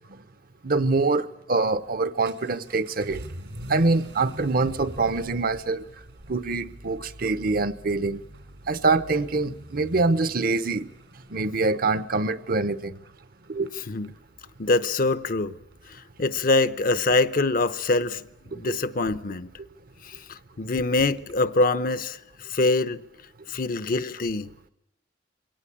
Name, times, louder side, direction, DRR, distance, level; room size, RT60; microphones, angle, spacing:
voice 1, 0.6-3.2 3.7-5.8 6.3-8.2 8.7-10.9 11.3-13.0 13.5-13.7 18.5-18.8, right 3 dB, 55° right, 0.8 m, -25 dB
Vehicle / Accelerating revving vroom, 1.7-21.5, right 1 dB, 85° right, 3.6 m, -45 dB
voice 2, 14.6-15.6 15.9-19.5 20.0-23.0 23.5-24.7, left 2 dB, 50° left, 0.8 m, -25 dB
23.0 x 18.0 x 8.5 m
head